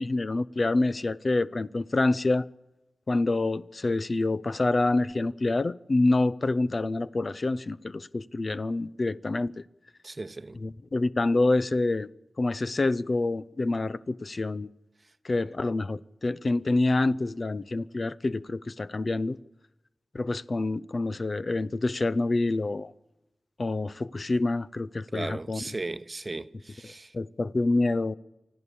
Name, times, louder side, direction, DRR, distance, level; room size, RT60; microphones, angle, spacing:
voice 1, 0.0-2.5 3.1-9.6 10.5-12.1 12.4-14.7 15.2-19.4 20.1-22.9 23.6-25.7 26.8-28.2, left 2 dB, 55° left, 0.6 m, -27 dB
voice 2, 10.0-10.5 25.1-27.1, right 2 dB, 40° right, 0.8 m, -36 dB
25.0 x 14.0 x 8.5 m
cardioid pair, 45°, 0 cm